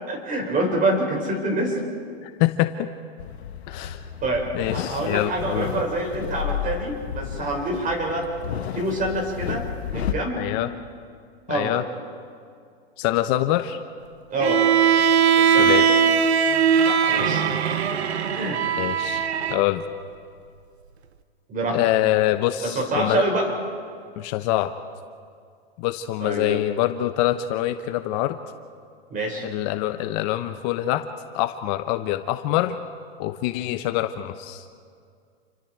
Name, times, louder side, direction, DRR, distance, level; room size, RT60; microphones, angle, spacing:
voice 1, 0.1-1.8 3.8-3.9 4.2-8.3 8.7-10.5 11.5-11.8 14.3-14.7 15.4-15.8 16.9-17.4 18.3-18.6 21.5-21.8 22.6-23.5 26.2-26.6 29.1-29.5, right 2 dB, 25° right, 2 dB, 5.8 m, -26 dB
voice 2, 2.2-2.9 3.7-4.1 4.5-5.7 10.4-10.7 11.5-11.8 13.0-13.8 15.4-15.9 18.8-19.8 21.7-23.2 24.2-24.7 25.8-28.4 29.4-31.0 31.3-32.8 33.2-34.6, left 14 dB, 45° left, 9 dB, 1.0 m, -25 dB
sound 1, 3.2-10.1, left 10 dB, 80° left, 1.5 m, -32 dB
Bowed string instrument, 14.4-19.6, right 7 dB, 85° right, 1.4 m, -20 dB
28.5 x 23.5 x 4.7 m, 2.2 s
hypercardioid pair, 125°, 32 cm